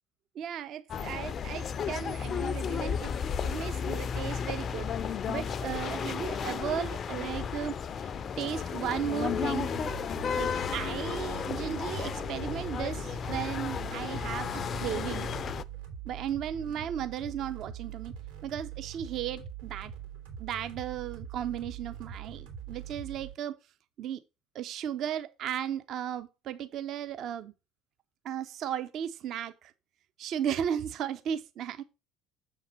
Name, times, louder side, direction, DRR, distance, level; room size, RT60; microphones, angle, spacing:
voice 1, 0.3-3.1 3.4-8.1 8.4-9.7 10.4-14.5 14.8-15.3 16.1-18.1 18.4-19.9 20.4-23.5 24.0-24.2 24.5-27.5 28.2-29.7 30.2-31.8, right 9 dB, 50° right, 0.5 m, -35 dB
sound 1, 0.9-15.6, left 7 dB, 35° left, 0.4 m, -33 dB
sound 2, 9.2-23.3, right 9 dB, 80° right, 2.7 m, -43 dB
7.0 x 3.9 x 5.3 m
figure-of-eight pair, 60°, 0 cm